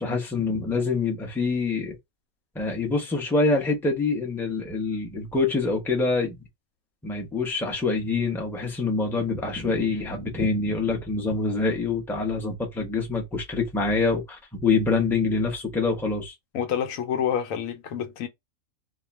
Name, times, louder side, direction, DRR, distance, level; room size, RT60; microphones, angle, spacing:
voice 1, 0.0-2.0 2.5-6.4 7.0-16.3, left 3 dB, ahead, 0.5 m, -25 dB
voice 2, 16.5-18.3, left 8 dB, 75° left, 1.0 m, -28 dB
2.4 x 2.2 x 3.1 m
omnidirectional pair, 1.4 m